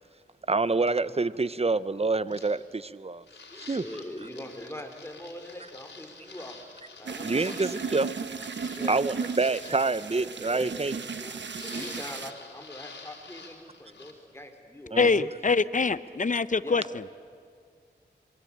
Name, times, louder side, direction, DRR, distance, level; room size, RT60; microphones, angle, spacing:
voice 1, 0.5-3.2 3.6-3.8 7.2-8.1 8.9-10.9 14.9-15.2, right 3 dB, 35° right, 17 dB, 0.8 m, -27 dB
sound 1, 2.3-2.5 3.2-14.1, left 4 dB, 75° left, 3.9 m, -48 dB
voice 2, 3.5-6.7 7.0-7.8 8.6-9.0 9.4-9.8 10.2-15.3 16.6-16.8, left 1 dB, 15° left, 5 dB, 3.9 m, -43 dB
sound 2, 7.1-12.3, right 5 dB, 80° right, 1.2 m, -36 dB
voice 3, 14.9-16.8, left 4 dB, 45° left, 15 dB, 0.9 m, -24 dB
26.5 x 22.5 x 8.7 m, 2.1 s
cardioid pair, 50°, 18 cm